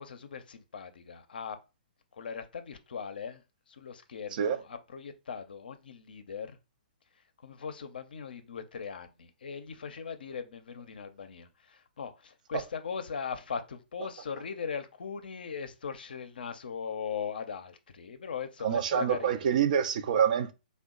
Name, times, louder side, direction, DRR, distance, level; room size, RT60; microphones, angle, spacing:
voice 1, 0.0-1.6 2.1-6.6 7.2-19.5, left 6 dB, 70° left, 0.5 m, -39 dB
voice 2, 18.6-20.5, right 8 dB, 55° right, 0.4 m, -26 dB
2.8 x 2.2 x 3.6 m
hypercardioid pair, 130°, 5 cm